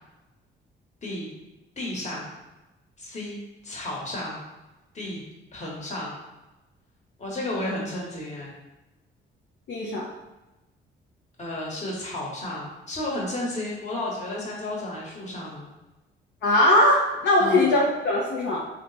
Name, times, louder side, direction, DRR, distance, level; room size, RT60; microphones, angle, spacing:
voice 1, 1.8-2.3 3.0-3.4 3.6-4.4 4.9-5.2 5.5-6.1 7.2-8.5 11.4-15.7 17.4-17.7, left 1 dB, 35° left, -4 dB, 1.2 m, -32 dB
voice 2, 9.7-10.1 16.4-18.6, left 1 dB, 65° left, -4 dB, 0.7 m, -20 dB
3.2 x 2.0 x 4.0 m, 1.0 s
cardioid pair, 90°, 20 cm